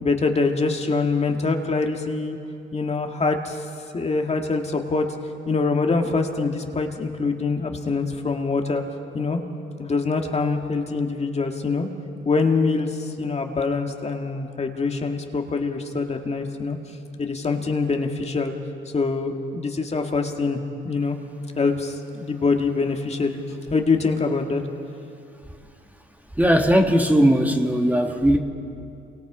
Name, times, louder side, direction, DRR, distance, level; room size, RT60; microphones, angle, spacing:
voice 1, 0.0-2.4 2.7-3.6 3.9-5.1 5.5-8.8 9.1-9.4 9.8-11.9 12.3-16.8 17.2-18.5 18.9-21.2 21.6-23.4 23.7-24.6, left 4 dB, 30° left, 3 dB, 1.9 m, -24 dB
voice 2, 26.4-28.4, equal, 10° right, 3 dB, 1.7 m, -18 dB
28.5 x 24.0 x 5.0 m, 2.6 s
cardioid pair, 90°, 20 cm